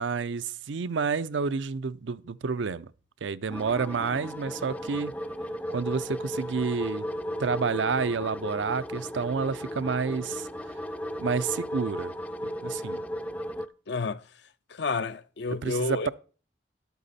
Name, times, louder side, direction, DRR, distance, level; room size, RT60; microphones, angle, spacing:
voice 1, 0.0-2.9 3.2-5.1 5.7-7.1 7.4-10.8 11.2-12.1 12.6-13.0 15.5-16.1, right 5 dB, 85° right, 0.5 m, -29 dB
sound 1, 3.5-13.7, equal, 10° left, 0.4 m, -35 dB
voice 2, 13.9-14.2 14.7-16.1, left 4 dB, 70° left, 0.6 m, -30 dB
11.5 x 8.2 x 4.2 m
head